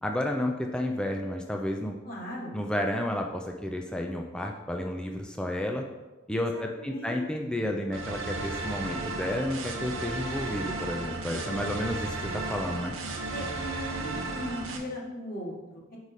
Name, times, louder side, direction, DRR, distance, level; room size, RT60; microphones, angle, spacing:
voice 1, 0.0-2.0 2.5-5.9 6.3-12.9, left 1 dB, 5° left, 2 dB, 0.4 m, -31 dB
voice 2, 2.0-2.6 6.5-7.3 7.6-7.8 13.3-16.0, equal, 45° left, -3 dB, 1.4 m, -38 dB
sound 1, 7.9-14.8, right 2 dB, 80° right, 0.8 m, -34 dB
5.2 x 4.7 x 4.1 m, 1.1 s
head